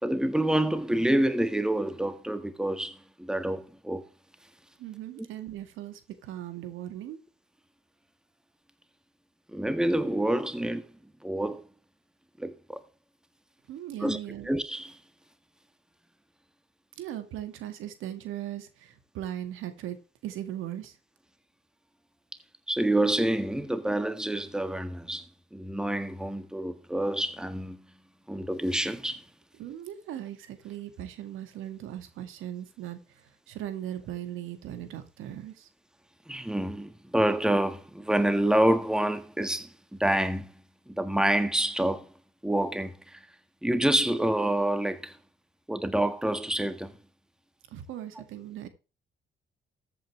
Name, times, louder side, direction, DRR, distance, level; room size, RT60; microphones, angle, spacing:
voice 1, 0.0-4.1 9.5-10.9 11.2-11.6 12.4-12.8 14.0-14.2 14.4-15.0 22.7-25.2 25.5-27.8 28.3-29.2 36.3-39.7 40.0-40.5 40.9-42.1 42.4-43.2 43.6-45.2 45.7-46.9, right 1 dB, 5° right, 1.6 m, -27 dB
voice 2, 4.8-7.2 13.7-14.5 17.0-20.0 20.2-21.0 29.6-35.7 47.7-48.7, right 12 dB, 90° right, 2.0 m, -38 dB
14.0 x 8.5 x 3.3 m
cardioid pair, 90°, 20 cm